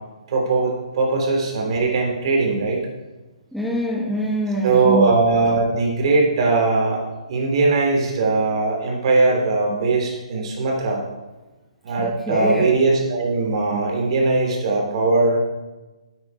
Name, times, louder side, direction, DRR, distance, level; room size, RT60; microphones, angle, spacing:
voice 1, 0.3-2.8 4.6-7.0 7.3-11.0 11.8-15.4, right 3 dB, 50° right, 0 dB, 3.2 m, -20 dB
voice 2, 3.5-5.1 12.0-12.7, right 1 dB, ahead, -3 dB, 1.1 m, -24 dB
9.7 x 8.1 x 4.7 m, 1.1 s
hypercardioid pair, 145°, 4 cm